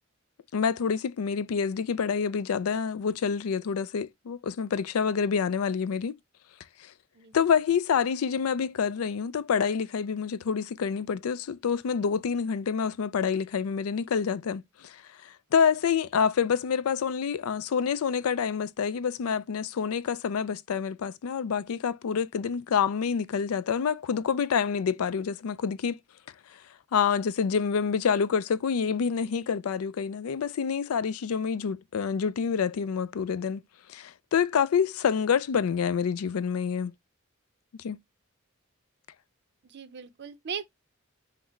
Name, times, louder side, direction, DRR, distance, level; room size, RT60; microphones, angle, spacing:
voice 1, 0.5-6.1 6.8-6.9 7.3-26.0 26.9-33.6 33.9-36.9 37.8-38.0, left 6 dB, 85° left, 0.4 m, -27 dB
voice 2, 39.6-40.7, right 6 dB, 55° right, 0.5 m, -38 dB
5.7 x 2.1 x 4.4 m
head